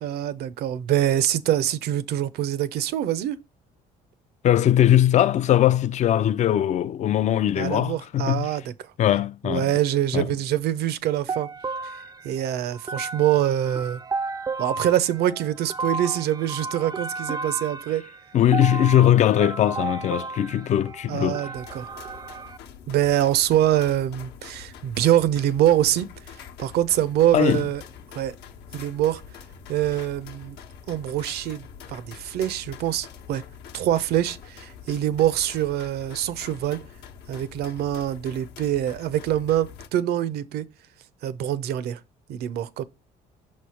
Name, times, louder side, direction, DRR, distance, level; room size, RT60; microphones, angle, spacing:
voice 1, 0.0-3.4 7.6-8.9 9.4-11.5 11.8-14.0 14.6-18.0 21.1-21.9 22.9-27.8 28.1-28.3 28.7-29.2 29.7-30.6 30.9-31.6 31.9-33.4 33.7-36.8 37.3-40.6 41.2-42.0 42.3-42.8, right 12 dB, 70° right, 0.6 m, -24 dB
voice 2, 4.4-8.5 9.0-9.7 10.1-10.3 18.3-21.4 27.3-27.6, left 11 dB, 45° left, 0.4 m, -20 dB
sound 1, 11.3-22.6, right 3 dB, 20° right, 0.4 m, -33 dB
sound 2, 21.5-39.9, left 7 dB, 75° left, 0.9 m, -45 dB
6.1 x 3.2 x 5.6 m
cardioid pair, 110°, 17 cm